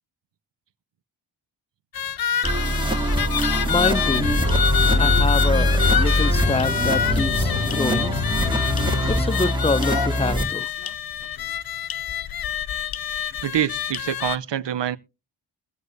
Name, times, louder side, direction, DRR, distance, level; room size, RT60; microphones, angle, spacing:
sound 1, 1.9-14.4, left 9 dB, 50° left, 0.7 m, -27 dB
sound 2, 2.4-10.4, equal, 10° right, 2.3 m, -23 dB
voice 1, 3.6-4.3 5.0-8.1 9.1-10.7, left 3 dB, 15° left, 0.6 m, -26 dB
sound 3, 4.2-9.2, left 8 dB, 85° left, 0.8 m, -29 dB
voice 2, 13.4-15.0, right 10 dB, 60° right, 0.9 m, -25 dB
21.0 x 8.1 x 2.7 m
cardioid pair, 45°, 49 cm